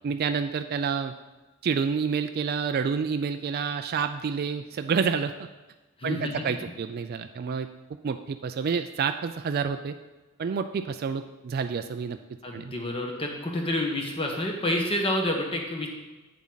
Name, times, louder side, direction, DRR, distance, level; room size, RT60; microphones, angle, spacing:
voice 1, 0.0-1.1 1.6-5.5 6.0-7.7 8.0-10.0 10.4-12.2 12.5-12.7, right 6 dB, 45° right, 8 dB, 0.3 m, -28 dB
voice 2, 6.0-6.7 12.4-15.9, left 1 dB, 25° left, 1 dB, 1.2 m, -29 dB
8.6 x 7.1 x 3.9 m, 1.2 s
head